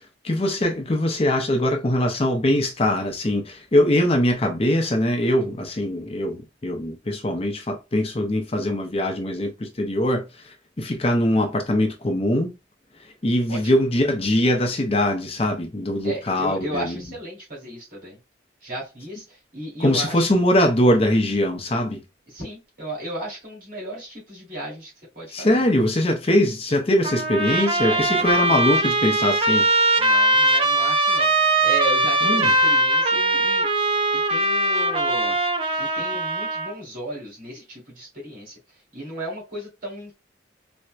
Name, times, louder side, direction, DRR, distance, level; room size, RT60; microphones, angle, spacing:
voice 1, 0.2-12.5 13.2-17.0 19.8-22.0 25.3-29.7 32.2-32.5, left 1 dB, 35° left, 0.6 m, -22 dB
voice 2, 16.0-18.2 18.6-20.4 22.3-25.6 27.8-28.2 28.6-28.7 30.0-33.7 34.3-35.4 35.8-38.5 38.9-40.1, right 1 dB, 50° right, 2.0 m, -35 dB
Trumpet, 27.0-36.7, right 1 dB, 30° right, 0.5 m, -21 dB
4.2 x 2.1 x 2.4 m
head